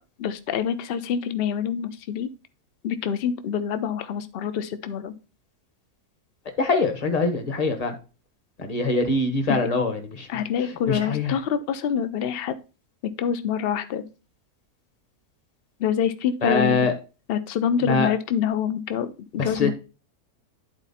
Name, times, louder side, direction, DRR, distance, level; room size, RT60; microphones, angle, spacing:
voice 1, 0.2-2.3 2.8-5.1 9.5-9.6 10.3-12.6 13.2-14.0 15.8-16.8 17.3-19.7, left 8 dB, 55° left, 11 dB, 0.7 m, -26 dB
voice 2, 6.6-7.9 8.6-10.3 10.9-11.3 16.4-16.9 17.8-18.1 19.4-19.7, left 3 dB, 25° left, 6 dB, 1.2 m, -23 dB
10.5 x 4.3 x 4.2 m, 0.32 s
omnidirectional pair, 1.7 m